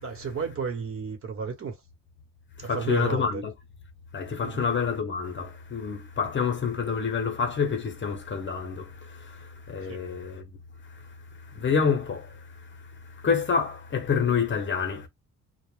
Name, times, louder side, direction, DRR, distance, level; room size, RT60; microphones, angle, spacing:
voice 1, 0.0-1.8 2.6-3.4 4.4-4.6 9.9-10.0, right 5 dB, 45° right, 1.0 m, -32 dB
voice 2, 2.6-3.5 4.1-10.6 10.8-15.1, left 6 dB, 40° left, 0.8 m, -28 dB
2.4 x 2.2 x 3.2 m
cardioid pair, 90°, 30 cm